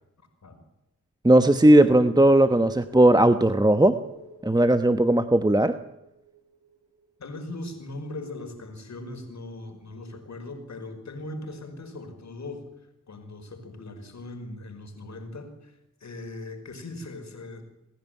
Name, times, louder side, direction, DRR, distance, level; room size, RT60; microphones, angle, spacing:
voice 1, 1.2-4.0 4.4-5.8, right 1 dB, 15° right, 10 dB, 1.2 m, -17 dB
sound 1, 2.1-7.4 7.6-7.7, right 4 dB, 80° right, 2.2 m, -47 dB
voice 2, 7.2-12.7 13.1-15.7 16.0-17.6, left 2 dB, 60° left, 6 dB, 5.3 m, -39 dB
27.5 x 10.5 x 9.2 m, 0.89 s
supercardioid pair, 40°, 31 cm